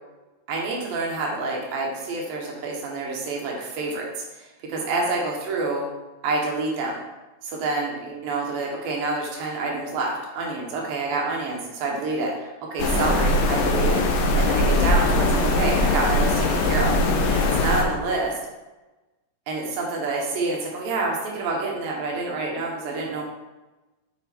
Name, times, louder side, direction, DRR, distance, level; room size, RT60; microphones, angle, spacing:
voice 1, 0.5-5.9 6.2-7.0 7.4-18.3 19.5-23.2, right 3 dB, 85° right, -1 dB, 3.1 m, -28 dB
sound 1, 12.8-17.8, left 2 dB, 80° left, 2.5 m, -21 dB
7.9 x 5.1 x 4.5 m, 1.1 s
omnidirectional pair, 4.0 m